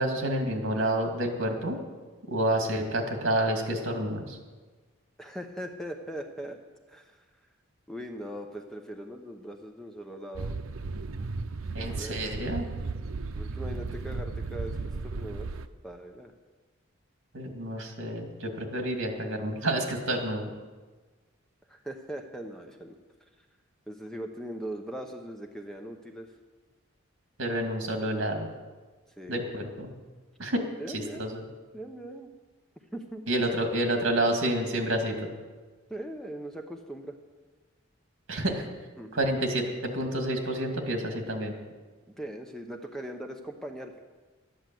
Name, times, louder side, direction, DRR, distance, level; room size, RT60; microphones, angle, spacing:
voice 1, 0.0-1.8 2.3-4.4 11.7-12.7 17.3-20.5 27.4-28.5 29.3-29.9 30.4-30.6 30.9-31.4 33.3-35.1 38.3-38.7 39.1-41.5, right 1 dB, 65° right, 3 dB, 2.4 m, -29 dB
voice 2, 5.2-6.6 6.9-7.2 7.9-10.6 11.8-12.3 13.4-14.8 15.0-15.5 15.8-16.3 21.7-22.9 23.9-26.3 29.2-29.5 30.8-31.3 31.7-32.3 32.9-33.3 35.9-37.1 39.0-39.1 42.2-43.9, right 1 dB, ahead, 3 dB, 0.8 m, -40 dB
sound 1, 10.3-15.6, right 3 dB, 80° right, 0.6 m, -35 dB
12.0 x 10.5 x 7.8 m, 1.3 s
head